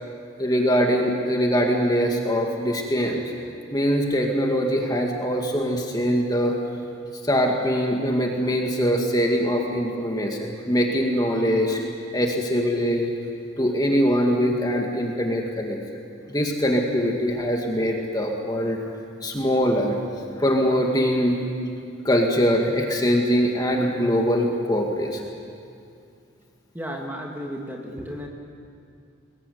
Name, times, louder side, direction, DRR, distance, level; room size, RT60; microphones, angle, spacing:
voice 1, 0.4-3.2 3.7-6.6 7.2-11.8 12.1-13.1 13.6-15.8 16.3-18.8 19.2-20.0 20.4-21.4 22.0-25.2, equal, 20° left, 1 dB, 2.0 m, -22 dB
voice 2, 26.7-28.3, equal, 10° right, 0 dB, 2.2 m, -33 dB
23.0 x 20.5 x 9.4 m, 2.4 s
head